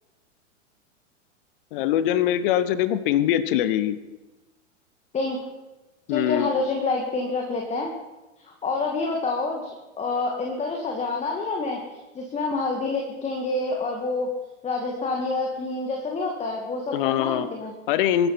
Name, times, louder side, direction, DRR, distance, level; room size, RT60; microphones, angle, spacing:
voice 1, 1.7-4.0 6.1-6.5 16.9-17.5 17.9-18.3, left 11 dB, 45° left, 14 dB, 1.2 m, -23 dB
voice 2, 5.1-5.4 6.1-7.9 8.4-9.7 10.0-14.3 14.6-17.7, left 3 dB, 15° left, 1 dB, 2.2 m, -27 dB
23.0 x 12.5 x 4.4 m, 1.1 s
figure-of-eight pair, 95°, 37 cm